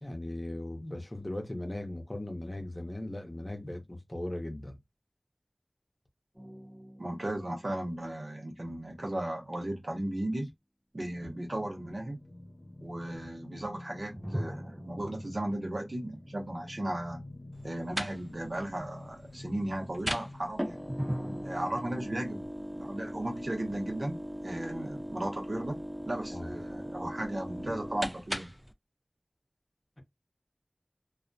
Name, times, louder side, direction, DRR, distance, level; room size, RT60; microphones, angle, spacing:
voice 1, 0.0-4.8 26.3-26.5, left 1 dB, 35° left, 0.7 m, -38 dB
sound 1, 6.3-9.6 14.1-17.2 17.5-17.6 20.9-24.2, equal, 20° right, 0.7 m, -43 dB
voice 2, 7.0-10.5 10.9-12.2 12.8-17.3 17.6-20.8 21.4-24.2 24.4-25.8 26.1-28.5, right 1 dB, 70° right, 0.8 m, -36 dB
sound 2, 11.1-22.5, left 1 dB, 70° left, 0.8 m, -49 dB
sound 3, 17.5-28.7, equal, 5° right, 0.3 m, -39 dB
2.3 x 2.1 x 2.5 m
wide cardioid pair, 45°, 0 cm